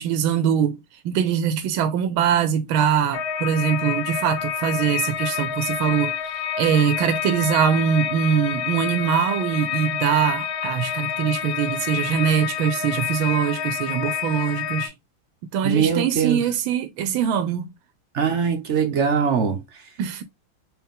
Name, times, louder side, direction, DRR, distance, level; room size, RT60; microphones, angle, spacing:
voice 1, 0.0-14.9 15.5-17.7 20.0-20.2, right 8 dB, 85° right, 1.5 m, -23 dB
sound 1, 3.1-14.9, left 8 dB, 65° left, 1.2 m, -28 dB
voice 2, 15.6-16.4 18.1-19.8, right 6 dB, 60° right, 0.7 m, -22 dB
4.4 x 3.2 x 3.6 m
omnidirectional pair, 2.2 m